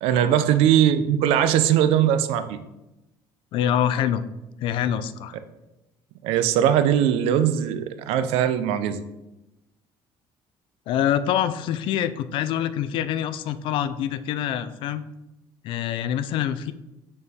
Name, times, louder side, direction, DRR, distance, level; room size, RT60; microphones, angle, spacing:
voice 1, 0.0-2.6 6.2-9.0, right 10 dB, 90° right, 11 dB, 0.5 m, -20 dB
voice 2, 3.5-4.2 4.6-5.4 10.9-15.0 15.6-16.7, left 10 dB, 60° left, 13 dB, 0.4 m, -25 dB
6.6 x 4.3 x 3.6 m, 0.96 s
cardioid pair, 160°, 10 cm